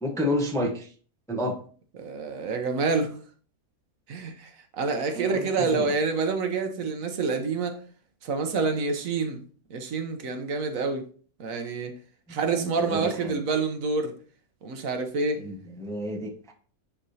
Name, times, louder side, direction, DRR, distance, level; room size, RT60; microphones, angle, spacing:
voice 1, 0.0-0.9 1.3-1.6 5.1-5.9 12.5-13.4 15.4-16.5, left 1 dB, 5° left, 0.6 m, -30 dB
voice 2, 2.0-3.2 4.1-7.8 8.2-9.4 9.7-11.0 11.4-11.9 12.3-14.2 14.6-15.4, right 4 dB, 70° right, 1.2 m, -27 dB
9.9 x 3.5 x 2.7 m
omnidirectional pair, 1.5 m